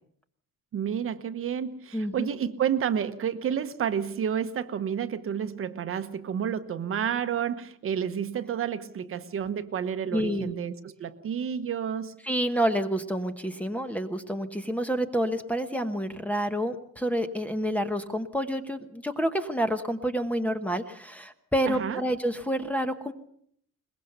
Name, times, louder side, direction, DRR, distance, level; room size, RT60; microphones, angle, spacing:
voice 1, 0.7-12.1 21.7-22.0, right 8 dB, 40° right, 1.1 m, -30 dB
voice 2, 1.9-2.3 10.1-10.5 12.2-23.1, equal, 5° left, 1.1 m, -28 dB
22.0 x 20.5 x 6.7 m
cardioid pair, 165°, 32 cm